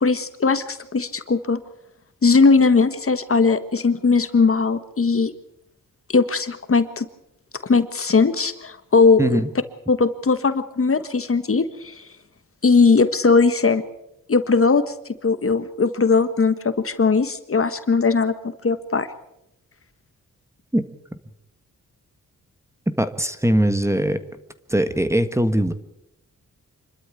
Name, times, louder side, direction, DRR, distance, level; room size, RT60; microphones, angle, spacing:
voice 1, 0.0-1.6 2.2-5.3 6.1-7.1 7.6-9.4 9.9-12.0 12.6-13.8 14.3-14.9 15.2-19.1, left 4 dB, 40° left, 11 dB, 1.5 m, -19 dB
voice 2, 9.2-9.5 20.7-20.8 23.0-24.2 24.7-25.7, right 1 dB, 10° right, 10 dB, 1.5 m, -20 dB
26.5 x 12.5 x 8.5 m, 0.85 s
cardioid pair, 70°, 33 cm